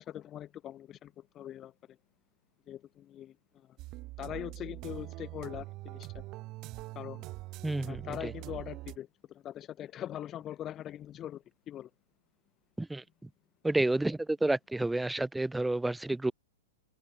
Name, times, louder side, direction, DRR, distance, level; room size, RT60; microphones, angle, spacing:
voice 1, 0.0-1.7 2.7-3.7 4.2-6.2 7.0-7.3 7.8-11.9, left 11 dB, 20° left, 1.7 m, -42 dB
sound 1, 3.8-9.0, right 20 dB, 30° right, 4.5 m, -43 dB
voice 2, 7.6-8.3 12.8-13.0 13.6-16.3, right 2 dB, 5° right, 2.9 m, -30 dB
hypercardioid pair, 150°, 0 cm